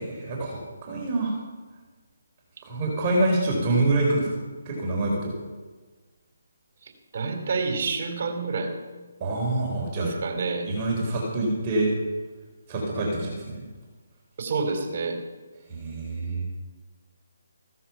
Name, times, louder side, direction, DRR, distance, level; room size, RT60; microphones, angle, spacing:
voice 1, 0.0-1.4 2.6-4.3 4.6-5.3 9.2-10.1 10.6-11.9 12.7-13.6 15.7-16.5, right 2 dB, 30° right, -2 dB, 4.4 m, -26 dB
voice 2, 6.8-8.7 10.0-10.7 14.4-15.2, right 4 dB, 50° right, 5 dB, 3.9 m, -28 dB
15.5 x 14.0 x 5.9 m, 1.3 s
figure-of-eight pair, 150°, 0 cm